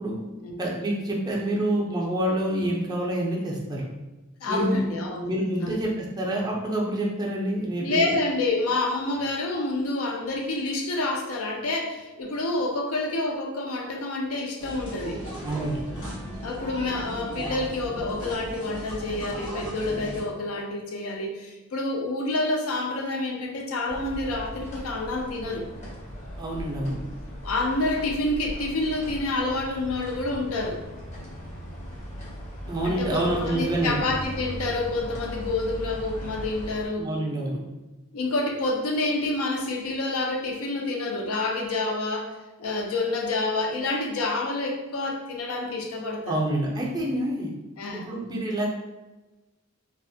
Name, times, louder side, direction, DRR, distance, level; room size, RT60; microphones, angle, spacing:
voice 1, 0.6-3.9 4.5-4.8 5.2-8.1 15.4-15.8 26.4-26.9 32.7-34.0 37.0-37.6 46.3-47.5 47.9-48.7, right 1 dB, 20° right, -3 dB, 0.4 m, -27 dB
voice 2, 4.4-5.3 5.6-5.8 7.8-15.2 16.4-25.7 27.4-30.8 32.8-37.1 38.1-46.4 47.8-48.1, left 2 dB, 75° left, 1 dB, 0.4 m, -28 dB
sound 1, 14.6-20.2, right 1 dB, 60° left, 1.0 m, -36 dB
sound 2, 23.9-36.9, equal, 35° left, 0.6 m, -38 dB
2.3 x 2.0 x 2.6 m, 1.1 s
head